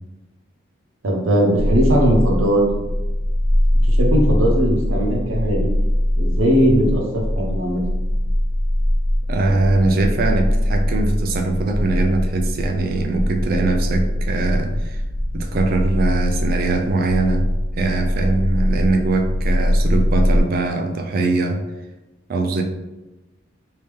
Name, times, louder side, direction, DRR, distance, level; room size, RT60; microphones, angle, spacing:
voice 1, 1.0-2.6 3.8-5.7 6.2-7.8, equal, 85° right, 0 dB, 0.8 m, -19 dB
sound 1, 1.5-20.4, equal, 50° left, 0.5 m, -21 dB
voice 2, 9.3-15.0 15.3-17.5 17.8-21.6 22.3-22.6, right 2 dB, 50° right, 3 dB, 0.4 m, -21 dB
3.4 x 2.7 x 3.1 m, 1.1 s
head